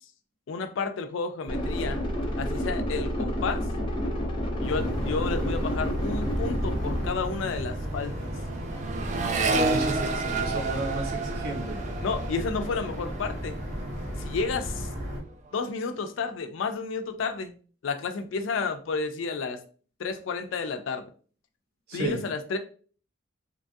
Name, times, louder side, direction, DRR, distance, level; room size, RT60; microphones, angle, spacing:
voice 1, 0.5-2.0 2.4-3.6 4.6-8.3 12.0-13.6 14.2-14.9 15.5-17.5 17.8-19.6 20.0-21.0 21.9-22.6, left 4 dB, 70° left, 8 dB, 0.4 m, -31 dB
sound 1, 1.5-7.1, equal, 25° left, 0.7 m, -29 dB
sound 2, 4.6-15.2, equal, 80° right, 1.2 m, -34 dB
Accelerating revving vroom, 6.8-14.3 14.6-15.3, right 3 dB, 40° right, 0.3 m, -32 dB
voice 2, 9.4-11.8 21.9-22.2, right 1 dB, 55° right, 2 dB, 0.8 m, -32 dB
2.9 x 2.3 x 2.5 m, 0.41 s
head